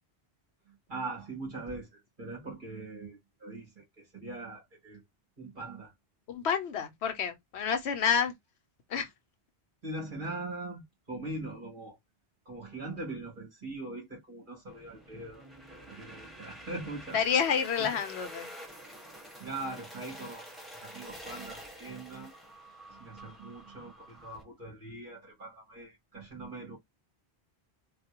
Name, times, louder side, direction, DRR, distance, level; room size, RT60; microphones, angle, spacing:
voice 1, 0.7-5.0 5.4-5.9 9.8-10.8 11.1-12.0 12.5-17.2 17.8-17.9 19.4-20.4 20.8-22.3 22.9-26.8, right 2 dB, 50° right, 2.0 m, -41 dB
voice 2, 6.3-8.3 8.9-9.1 17.1-18.5, left 7 dB, 85° left, 1.1 m, -29 dB
sound 1, 14.7-24.4, equal, ahead, 1.3 m, -48 dB
4.1 x 2.4 x 2.9 m
omnidirectional pair, 1.1 m